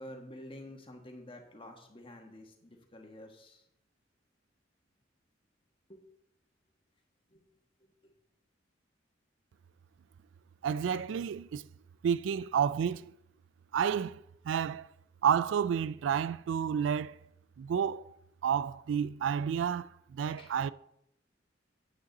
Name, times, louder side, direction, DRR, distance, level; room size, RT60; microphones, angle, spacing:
voice 1, 0.0-3.6 5.9-6.0 7.3-7.4 7.8-7.9 20.4-20.5, left 1 dB, 30° left, 1.6 m, -49 dB
voice 2, 10.6-11.7 12.0-13.1 13.7-14.9 15.2-17.2 17.6-18.1 18.4-20.7, right 8 dB, 75° right, 0.3 m, -30 dB
9.2 x 8.4 x 4.1 m
head